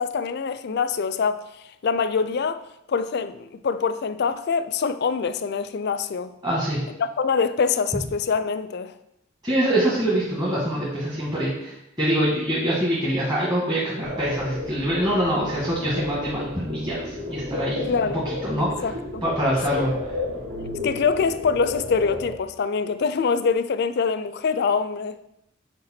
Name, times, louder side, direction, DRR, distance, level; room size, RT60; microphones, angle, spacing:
voice 1, 0.0-1.5 1.8-6.3 7.0-8.9 17.9-18.3 18.8-19.2 19.8-19.9 20.8-25.2, left 5 dB, 55° left, 0.4 m, -24 dB
voice 2, 6.4-6.8 9.4-17.9 18.2-18.8 19.2-19.9, right 1 dB, 20° right, 1.4 m, -24 dB
sound 1, 14.0-22.3, left 2 dB, 55° right, 1.2 m, -33 dB
6.6 x 4.7 x 4.3 m
head